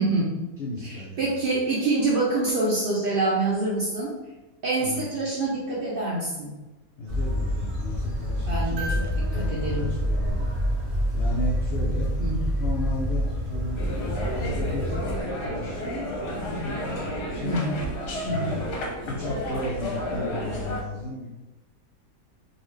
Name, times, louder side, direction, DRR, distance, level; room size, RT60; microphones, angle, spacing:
voice 1, 0.0-0.5 0.8-4.2 4.6-6.6 8.5-9.9 11.8-12.6 17.4-17.8 18.2-18.5, right 2 dB, 65° right, -6 dB, 0.5 m, -26 dB
voice 2, 0.6-1.5 4.8-5.1 7.0-10.5 11.1-12.1 12.6-13.8 14.3-14.9 15.4-15.8 16.2-17.5 18.2-18.7 19.1-21.3, left 2 dB, 80° left, -3 dB, 0.5 m, -34 dB
sound 1, 7.1-15.2, equal, 25° right, 0.8 m, -27 dB
sound 2, 8.8-11.1 13.1-13.2, right 1 dB, 90° right, 1.2 m, -40 dB
sound 3, 13.8-20.8, equal, 60° left, 0.9 m, -31 dB
3.8 x 2.3 x 3.1 m, 1.1 s
omnidirectional pair, 1.7 m